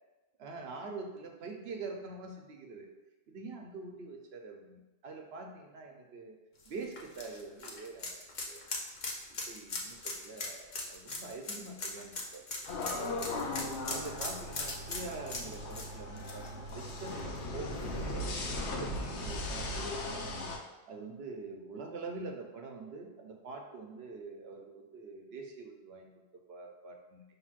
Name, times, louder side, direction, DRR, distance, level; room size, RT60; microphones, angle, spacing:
voice 1, 0.4-2.9 3.3-6.4 6.7-8.6 9.5-12.5 13.9-20.3 20.9-26.2 26.5-27.2, right 3 dB, 70° right, 2 dB, 0.9 m, -45 dB
sound 1, 6.6-17.4 17.7-17.8 19.3-19.4, left 3 dB, 50° left, 0.8 m, -40 dB
sound 2, 12.7-20.6, left 1 dB, 90° left, 1.0 m, -38 dB
5.9 x 3.3 x 2.4 m, 1.1 s
omnidirectional pair, 1.1 m